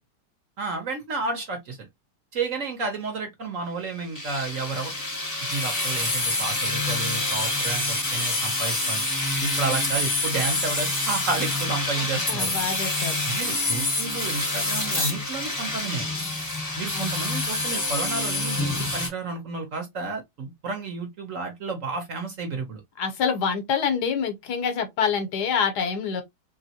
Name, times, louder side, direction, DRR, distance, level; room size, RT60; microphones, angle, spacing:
voice 1, 0.6-1.8 2.3-4.9 5.5-9.1 9.4-12.5 13.3-16.1 16.8-22.8, right 4 dB, 60° right, 0.9 m, -31 dB
sound 1, 4.1-19.1, left 2 dB, 15° left, 0.6 m, -27 dB
voice 2, 12.0-13.2 16.9-17.1 23.0-26.2, left 6 dB, 70° left, 1.3 m, -26 dB
3.0 x 2.9 x 2.7 m
omnidirectional pair, 1.9 m